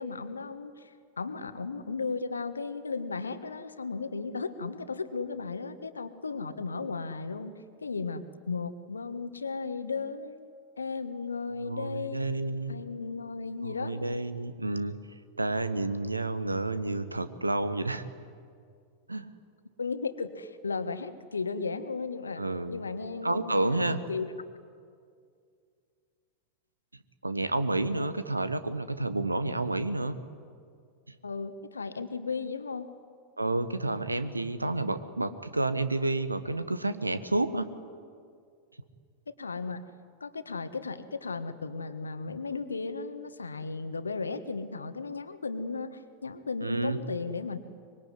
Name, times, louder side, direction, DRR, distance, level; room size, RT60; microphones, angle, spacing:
voice 1, 0.0-7.5 7.8-10.4 10.8-12.3 12.7-13.9 19.8-22.4 22.7-24.3 27.9-28.1 31.2-32.9 39.3-39.8 40.2-47.6, left 4 dB, 75° left, 11 dB, 1.5 m, -35 dB
voice 2, 11.6-12.8 13.6-15.0 15.4-18.1 19.1-19.2 22.4-22.8 23.2-24.0 27.2-30.2 33.4-37.7 46.6-47.0, right 2 dB, 80° right, 13 dB, 1.3 m, -30 dB
24.5 x 22.5 x 9.8 m, 2.2 s
figure-of-eight pair, 90°, 0 cm